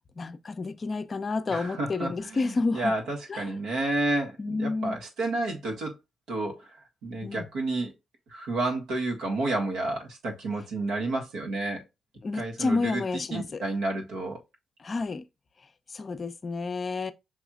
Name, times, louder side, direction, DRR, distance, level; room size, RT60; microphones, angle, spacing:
voice 1, 0.2-3.0 3.3-3.5 4.4-5.0 7.2-7.5 12.2-13.6 14.8-15.3 15.9-17.1, left 3 dB, 35° left, 0.6 m, -30 dB
voice 2, 1.5-5.9 6.3-7.9 8.3-11.8 12.3-13.0 13.3-14.4, right 2 dB, 80° right, 1.6 m, -30 dB
5.6 x 3.1 x 2.4 m
cardioid pair, 90°, 0 cm